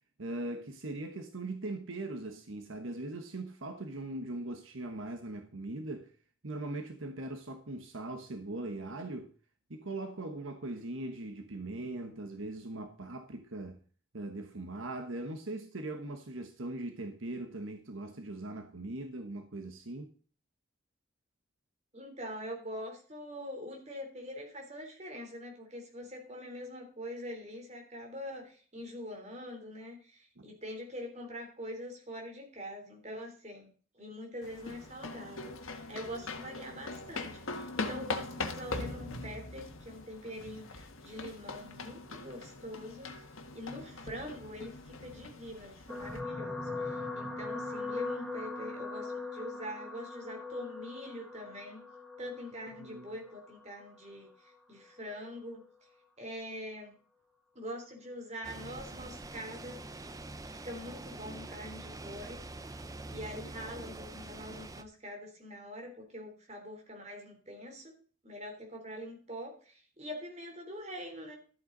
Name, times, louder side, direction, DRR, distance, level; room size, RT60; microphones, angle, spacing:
voice 1, 0.2-6.1 6.4-9.3 9.7-13.8 14.1-20.1 30.4-30.5 52.8-53.1, right 2 dB, 75° right, 1.2 m, -40 dB
voice 2, 21.9-33.7 34.0-43.1 43.5-51.8 52.2-54.3 54.7-55.6 56.2-57.0 57.6-59.8 60.5-62.4 63.1-68.0 68.2-71.4, equal, 30° right, 3.4 m, -44 dB
sound 1, 34.4-46.2, left 3 dB, 80° left, 1.6 m, -41 dB
sound 2, 45.9-54.3 55.1-55.3 55.6-55.7, left 3 dB, 5° left, 1.4 m, -40 dB
sound 3, 58.4-64.8, right 2 dB, 15° right, 0.5 m, -45 dB
13.0 x 8.5 x 3.9 m
head